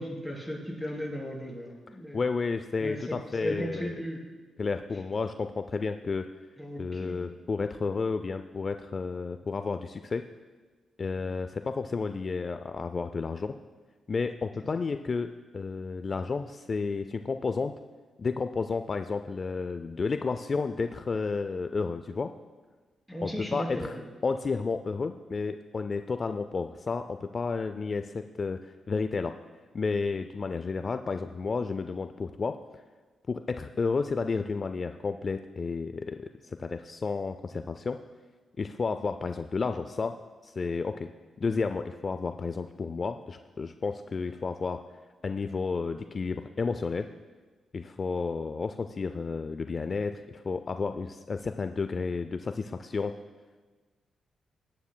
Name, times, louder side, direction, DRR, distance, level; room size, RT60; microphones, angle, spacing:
voice 1, 0.0-2.2 2.8-4.2 6.6-7.3 23.1-24.1, equal, ahead, -2 dB, 3.2 m, -36 dB
voice 2, 2.1-3.9 4.6-6.3 6.8-10.3 11.0-13.6 14.1-17.7 18.2-22.3 23.2-24.0 24.2-29.3 29.7-32.8 33.3-38.0 38.6-40.2 40.4-41.1 41.4-44.8 45.2-47.1 47.7-53.1, left 4 dB, 40° left, 9 dB, 0.3 m, -31 dB
18.0 x 9.6 x 2.2 m, 1.4 s
cardioid pair, 85°, 0 cm